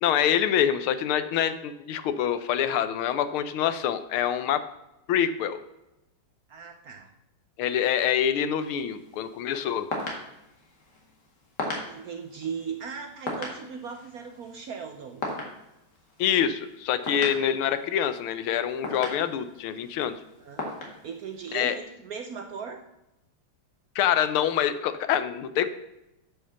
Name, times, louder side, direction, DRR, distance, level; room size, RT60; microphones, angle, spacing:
voice 1, 0.0-4.6 5.1-5.6 7.6-9.9 16.2-20.2 21.5-21.7 23.9-25.7, left 9 dB, 85° left, 12 dB, 1.6 m, -25 dB
voice 2, 6.5-7.1 11.9-15.2 20.4-20.7 21.0-22.8, right 6 dB, 65° right, 6 dB, 0.9 m, -38 dB
sound 1, 8.6-21.8, left 2 dB, 55° left, 2.5 m, -39 dB
9.9 x 5.8 x 6.7 m, 0.90 s
omnidirectional pair, 2.3 m